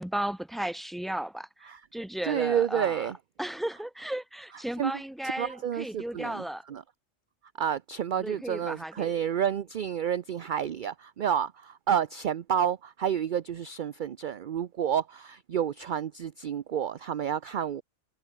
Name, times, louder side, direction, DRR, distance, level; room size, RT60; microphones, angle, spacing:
voice 1, 0.0-3.1 3.4-6.6 8.2-9.1, right 1 dB, ahead, 1.5 m, -35 dB
voice 2, 2.3-3.2 4.8-4.9 5.4-6.8 7.6-17.8, right 9 dB, 50° right, 0.6 m, -30 dB
omnidirectional pair, 1.3 m